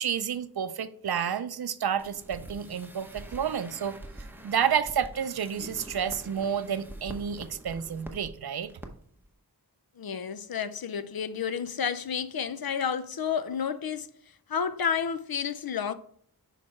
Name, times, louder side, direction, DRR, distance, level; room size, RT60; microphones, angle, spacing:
voice 1, 0.0-4.0 4.4-8.7, right 8 dB, 70° right, 0.5 m, -30 dB
sound 1, 2.0-8.3 8.6-8.9 9.2-9.3, right 1 dB, 5° right, 0.8 m, -45 dB
voice 2, 10.0-14.1 14.5-15.9, left 7 dB, 65° left, 0.6 m, -30 dB
6.4 x 4.9 x 4.3 m
wide cardioid pair, 70°, 39 cm